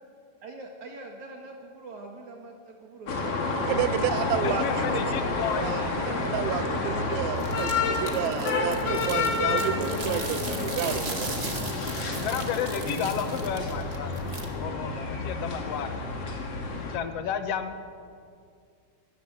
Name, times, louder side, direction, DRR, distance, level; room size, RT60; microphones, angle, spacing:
voice 1, 0.4-3.4, right 2 dB, 60° right, 1 dB, 2.9 m, -43 dB
sound 1, 3.1-17.0, left 3 dB, 45° left, 3.0 m, -29 dB
voice 2, 3.7-5.1 5.6-11.3, right 11 dB, 85° right, 14 dB, 2.5 m, -31 dB
voice 3, 4.4-5.7 12.2-14.1 14.6-16.1 16.7-17.8, left 8 dB, 65° left, 8 dB, 1.7 m, -32 dB
sound 2, 7.4-14.5, right 2 dB, 25° right, 1.5 m, -38 dB
24.0 x 14.5 x 8.8 m, 2.2 s
omnidirectional pair, 4.2 m